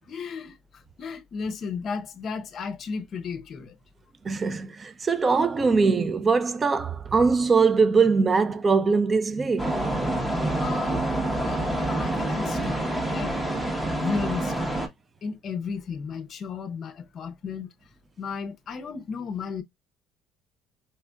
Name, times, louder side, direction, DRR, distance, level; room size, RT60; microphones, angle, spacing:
voice 1, 0.1-3.8 10.6-12.8 13.1-13.3 13.9-14.8 15.2-17.7 18.2-19.6, left 5 dB, 40° left, 0.6 m, -34 dB
voice 2, 4.2-9.8, right 4 dB, 20° right, 0.4 m, -22 dB
sound 1, 9.6-14.9, right 1 dB, 5° right, 0.7 m, -27 dB
4.3 x 2.4 x 2.2 m
cardioid pair, 145°, 0 cm